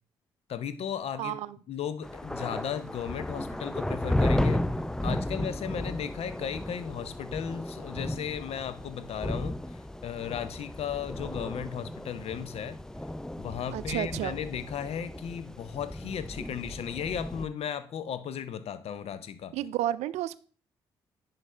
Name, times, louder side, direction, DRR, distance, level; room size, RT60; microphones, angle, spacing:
voice 1, 0.5-1.4 1.7-4.6 5.0-12.8 13.4-19.5, left 8 dB, 60° left, 0.6 m, -35 dB
voice 2, 1.2-1.6 13.7-14.4 19.5-20.4, right 13 dB, 70° right, 0.4 m, -31 dB
sound 1, 2.0-17.5, left 1 dB, 5° left, 0.4 m, -34 dB
10.5 x 4.1 x 3.3 m
hypercardioid pair, 45°, 12 cm